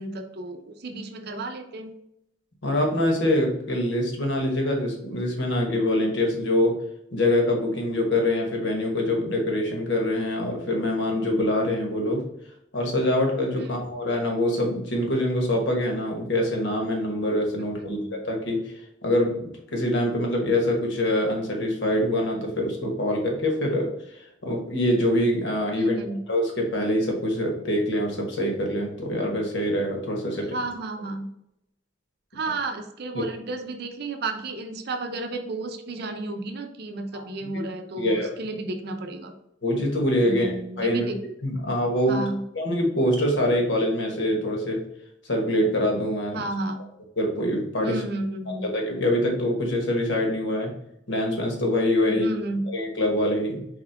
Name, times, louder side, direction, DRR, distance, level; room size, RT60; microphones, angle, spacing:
voice 1, 0.0-1.9 13.6-13.7 17.8-18.2 25.8-26.2 30.5-31.3 32.3-39.3 40.2-41.2 42.1-42.4 46.3-46.8 47.8-48.7 52.1-52.7, right 2 dB, 55° right, 6 dB, 0.6 m, -32 dB
voice 2, 2.6-6.7 7.1-12.3 12.7-18.6 19.0-23.9 24.2-26.0 26.3-30.6 33.1-33.2 37.1-37.6 38.0-38.3 39.6-41.1 41.4-42.2 42.5-44.8 45.3-46.4 47.2-48.0 48.6-50.7 51.1-52.3 52.7-53.7, left 1 dB, 65° left, 1 dB, 1.2 m, -24 dB
4.3 x 3.6 x 3.4 m, 0.79 s
head